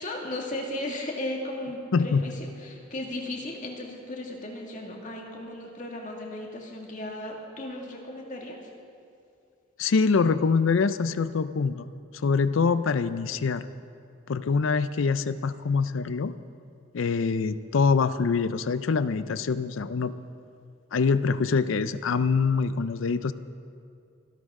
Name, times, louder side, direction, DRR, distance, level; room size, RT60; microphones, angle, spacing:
voice 1, 0.0-8.6, left 1 dB, 40° left, 0 dB, 2.0 m, -36 dB
voice 2, 1.9-2.2 9.8-11.9 12.2-13.7 14.3-16.3 16.9-20.1 20.9-23.3, left 5 dB, 75° left, 14 dB, 0.5 m, -24 dB
25.5 x 11.5 x 3.7 m, 2.4 s
head